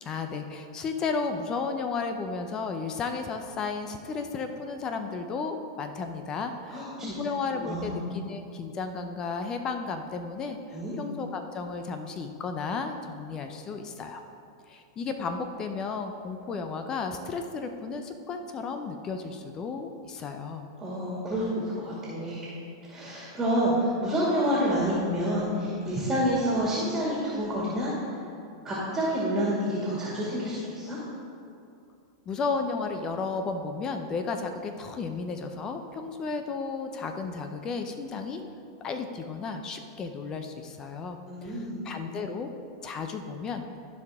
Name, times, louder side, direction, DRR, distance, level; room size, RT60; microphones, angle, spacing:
voice 1, 0.0-14.2 14.7-20.7 32.3-38.4 38.8-42.5 42.8-43.7, left 4 dB, 30° left, 6 dB, 0.7 m, -33 dB
voice 2, 6.7-7.1 7.5-8.2 10.7-11.0 20.8-22.5 22.8-27.9 28.6-31.0 41.3-41.9, equal, 15° right, -7 dB, 2.3 m, -28 dB
14.5 x 4.9 x 3.6 m, 2.5 s
hypercardioid pair, 105°, 2 cm